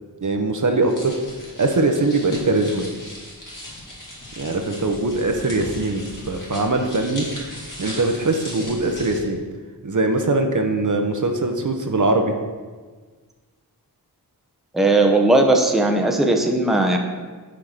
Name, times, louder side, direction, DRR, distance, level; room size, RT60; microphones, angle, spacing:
voice 1, 0.2-1.1 1.6-2.8 4.4-7.3 7.8-9.4 9.8-12.3, right 2 dB, 50° right, 5 dB, 0.8 m, -21 dB
sound 1, 0.8-9.2, left 1 dB, 50° left, 2.5 m, -38 dB
voice 2, 14.7-17.0, right 2 dB, ahead, 3 dB, 0.8 m, -17 dB
5.9 x 4.8 x 6.6 m, 1.4 s
wide cardioid pair, 80°, 39 cm